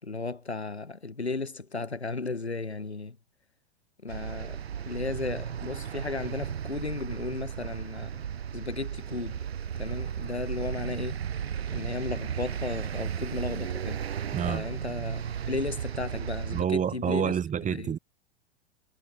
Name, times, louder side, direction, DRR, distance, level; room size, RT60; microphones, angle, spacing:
voice 1, 0.0-3.2 4.0-8.2 8.5-9.4 9.8-11.2 11.7-14.0 14.5-17.3 17.7-17.9, left 3 dB, 85° left, 5.8 m, -35 dB
sound 1, 4.1-16.6, right 8 dB, 75° right, 1.8 m, -35 dB
voice 2, 14.3-14.6 16.5-18.0, right 8 dB, 25° right, 3.7 m, -28 dB
figure-of-eight pair, 90°, 32 cm